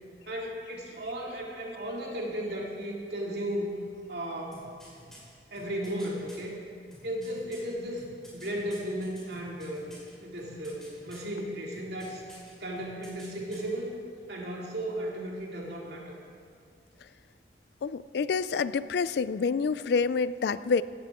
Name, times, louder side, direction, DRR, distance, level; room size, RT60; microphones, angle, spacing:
voice 1, 0.3-3.8 4.1-4.6 5.5-6.6 7.0-8.0 8.3-9.8 10.2-12.2 12.6-13.9 14.3-16.2, right 1 dB, 70° right, -2 dB, 2.5 m, -35 dB
sound 1, 4.5-6.4 6.9-10.1 10.4-11.3 11.7-12.5 12.8-13.7 14.0-14.1, equal, 5° left, 4.1 m, -51 dB
voice 2, 17.8-20.8, left 5 dB, 70° left, 17 dB, 0.3 m, -27 dB
16.5 x 12.5 x 3.7 m, 2.2 s
head